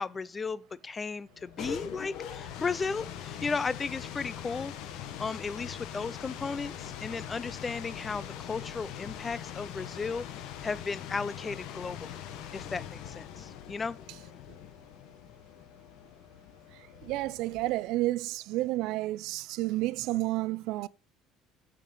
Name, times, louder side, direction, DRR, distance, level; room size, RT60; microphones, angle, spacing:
voice 1, 0.0-4.7 5.2-12.2 12.5-14.0, left 4 dB, 20° left, 0.4 m, -35 dB
sound 1, 1.3-18.0, left 9 dB, 70° left, 1.1 m, -42 dB
voice 2, 17.0-20.9, right 18 dB, 70° right, 0.4 m, -30 dB
6.7 x 6.4 x 5.3 m
cardioid pair, 160°, 0 cm